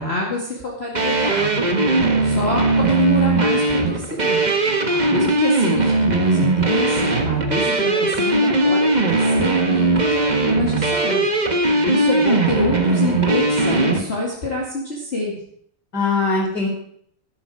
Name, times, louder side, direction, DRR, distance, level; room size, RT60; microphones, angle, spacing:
voice 1, 0.0-1.6 2.2-4.4 5.1-11.3 11.9-15.4, left 2 dB, 30° left, -4 dB, 2.3 m, -26 dB
sound 1, 0.9-14.0, right 2 dB, 25° right, 1.2 m, -19 dB
voice 2, 1.8-2.2 4.9-5.2 11.7-11.9 15.9-16.7, left 3 dB, 50° left, -1 dB, 4.7 m, -24 dB
12.5 x 12.0 x 4.8 m, 0.66 s
omnidirectional pair, 2.3 m